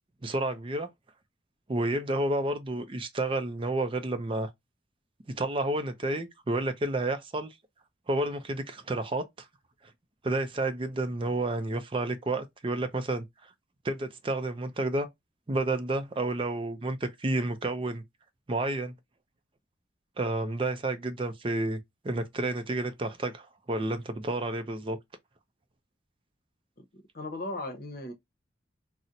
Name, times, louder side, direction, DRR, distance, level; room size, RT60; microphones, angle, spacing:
voice 1, 0.2-0.9 1.7-4.5 5.3-7.5 8.1-9.3 10.2-13.2 13.8-15.1 15.5-18.0 18.5-18.9 20.2-21.8 22.0-25.0, right 2 dB, 30° right, 0.4 m, -30 dB
voice 2, 26.8-28.1, left 2 dB, 55° left, 0.8 m, -37 dB
4.1 x 2.0 x 2.5 m
head